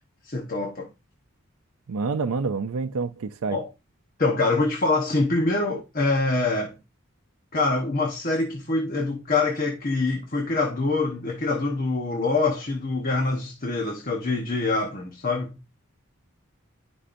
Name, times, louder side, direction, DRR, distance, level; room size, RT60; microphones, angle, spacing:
voice 1, 0.2-0.9 3.5-3.7 4.2-6.7 7.5-15.5, left 3 dB, 40° left, 1.0 m, -25 dB
voice 2, 1.9-3.6, right 4 dB, 80° right, 0.5 m, -27 dB
11.5 x 5.3 x 2.5 m
head